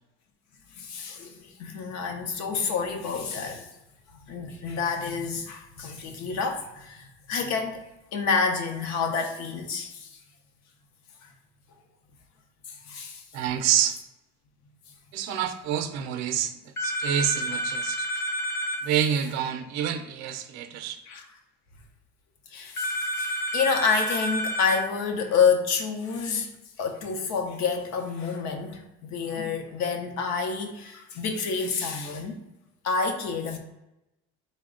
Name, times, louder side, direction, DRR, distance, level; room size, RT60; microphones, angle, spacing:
voice 1, 0.7-3.7 4.1-7.8 8.1-10.2 11.2-11.3 12.7-13.2 18.1-18.4 21.0-21.4 22.5-26.5 26.8-32.4 32.8-33.6, left 5 dB, 70° left, 0.7 m, -28 dB
voice 2, 13.3-14.0 15.1-18.1 18.8-21.0, right 9 dB, 65° right, 0.5 m, -27 dB
sound 1, 16.8-18.8 22.8-24.8, equal, 10° left, 0.4 m, -29 dB
4.1 x 2.2 x 3.7 m
cardioid pair, 170°, 29 cm